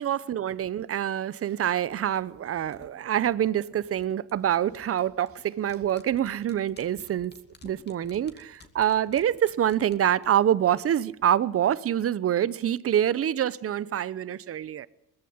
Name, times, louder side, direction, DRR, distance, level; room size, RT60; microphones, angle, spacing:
voice 1, 0.0-7.3 7.6-14.9, right 10 dB, 40° right, 0.9 m, -26 dB
sound 1, 1.9-11.3 11.6-11.7, left 3 dB, 30° left, 2.5 m, -55 dB
20.5 x 14.5 x 9.6 m
cardioid pair, 110°, 34 cm